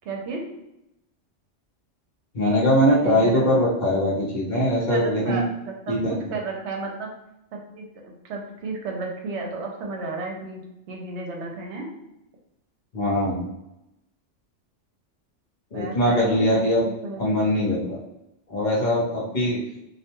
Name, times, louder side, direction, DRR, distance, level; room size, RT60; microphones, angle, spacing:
voice 1, 0.0-0.4 3.0-3.5 4.9-7.1 7.5-10.6 10.9-11.9 15.7-17.2, right 3 dB, 70° right, 1 dB, 0.8 m, -33 dB
voice 2, 2.3-5.4 5.9-6.2 12.9-13.4 15.7-16.8 17.2-18.0 18.5-19.6, equal, 45° left, -6 dB, 0.7 m, -21 dB
2.4 x 2.2 x 2.9 m, 0.87 s
omnidirectional pair, 1.3 m